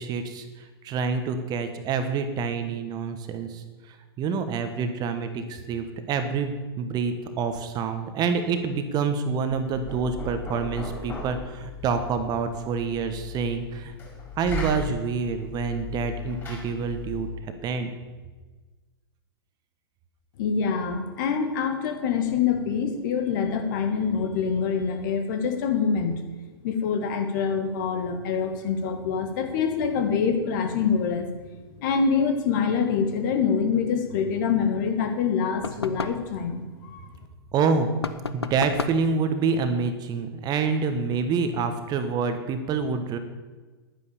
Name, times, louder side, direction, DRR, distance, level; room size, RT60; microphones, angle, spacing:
voice 1, 0.0-14.0 14.4-17.9 37.5-37.9 38.3-43.2, right 5 dB, 30° right, 8 dB, 1.4 m, -27 dB
Knock, 9.5-17.4, left 2 dB, 15° left, 5.3 m, -37 dB
voice 2, 20.4-26.2 26.6-31.3 31.8-37.0, left 6 dB, 50° left, 6 dB, 1.9 m, -25 dB
sound 1, 35.6-36.3 38.0-39.1, left 4 dB, 85° left, 0.8 m, -32 dB
10.5 x 9.8 x 7.1 m, 1.3 s
figure-of-eight pair, 100°, 13 cm